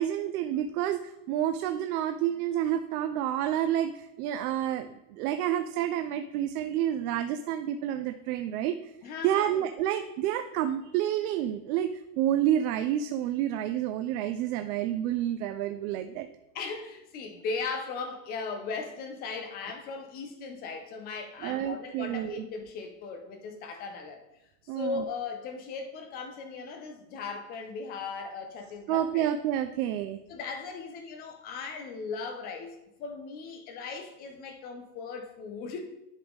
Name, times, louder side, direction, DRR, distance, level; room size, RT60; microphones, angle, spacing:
voice 1, 0.0-8.9 9.2-16.3 21.4-22.4 24.7-25.0 28.9-30.2, right 11 dB, 65° right, 7 dB, 0.5 m, -29 dB
voice 2, 9.0-9.7 16.5-24.2 24.7-29.3 30.3-35.9, left 4 dB, 20° left, 5 dB, 0.3 m, -38 dB
10.5 x 3.7 x 3.5 m, 0.90 s
supercardioid pair, 160°, 48 cm